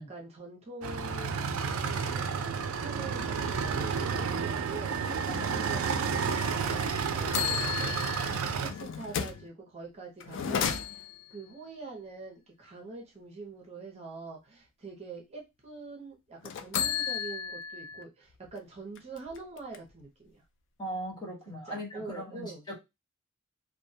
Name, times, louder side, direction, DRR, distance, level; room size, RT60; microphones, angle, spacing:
voice 1, 0.0-6.3 7.0-7.7 8.6-20.4 21.5-22.6, right 3 dB, 30° right, 0 dB, 0.6 m, -45 dB
sound 1, 0.8-8.7, right 5 dB, 70° right, 0.4 m, -31 dB
sound 2, 6.7-6.9 7.3-9.5 10.2-11.3 16.4-18.0 18.5-18.6 19.0-20.0, left 7 dB, 60° left, 0.3 m, -33 dB
voice 2, 20.8-22.8, equal, 20° left, -2 dB, 0.8 m, -39 dB
2.2 x 2.1 x 2.6 m, 0.22 s
head